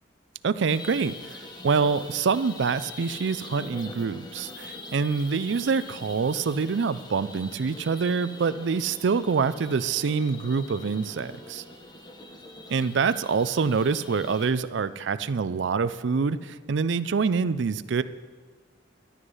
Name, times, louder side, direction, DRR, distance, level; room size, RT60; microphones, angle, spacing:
voice 1, 0.4-11.6 12.7-18.0, right 5 dB, 70° right, 14 dB, 0.4 m, -26 dB
sound 1, 0.7-14.5, left 2 dB, 25° left, 1.2 m, -43 dB
13.0 x 9.8 x 5.4 m, 1.5 s
head